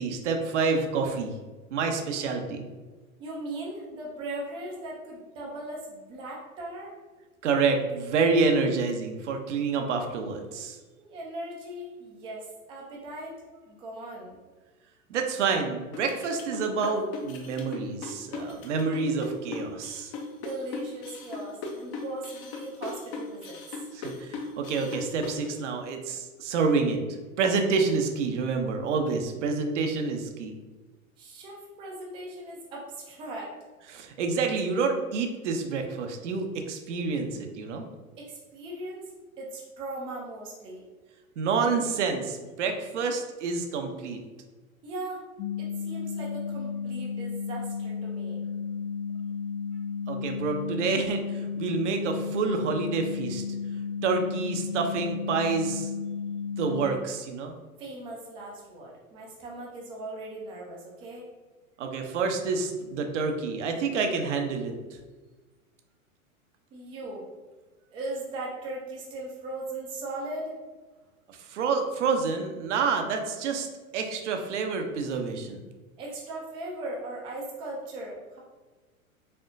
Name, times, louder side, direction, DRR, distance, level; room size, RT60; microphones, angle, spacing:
voice 1, 0.0-1.3 1.7-2.7 7.4-10.8 15.1-20.1 23.9-27.0 27.4-30.5 33.9-37.8 41.4-44.2 50.1-53.4 54.0-55.9 56.6-57.5 61.8-64.7 71.3-73.7 73.9-75.6, right 4 dB, 55° right, 4 dB, 0.7 m, -28 dB
voice 2, 3.2-6.9 11.0-13.4 13.7-14.4 20.4-23.6 31.2-33.5 38.2-39.0 39.4-40.8 44.8-45.2 45.6-48.4 57.8-61.3 66.7-67.3 67.9-70.5 76.0-78.4, right 2 dB, 15° right, -3 dB, 0.4 m, -38 dB
sound 1, 15.9-25.4, left 3 dB, 35° left, 0.6 m, -38 dB
sound 2, 45.4-56.9, left 6 dB, 85° left, 0.6 m, -33 dB
4.3 x 2.8 x 2.5 m, 1.3 s
figure-of-eight pair, 100°, 43 cm